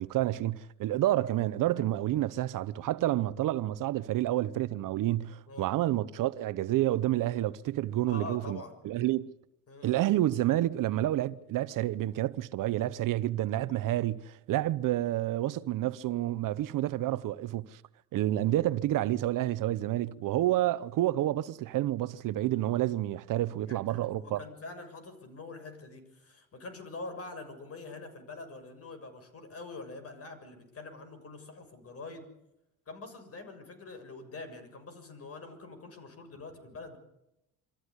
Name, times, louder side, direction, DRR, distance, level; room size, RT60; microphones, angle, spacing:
voice 1, 0.0-8.6 8.8-9.3 9.8-17.8 18.1-24.4, right 14 dB, 60° right, 0.9 m, -29 dB
voice 2, 8.1-8.8 9.7-10.0 20.4-20.7 23.6-32.3 32.8-37.0, left 3 dB, 40° left, 6.9 m, -45 dB
25.0 x 14.5 x 9.9 m
supercardioid pair, 95°, 36 cm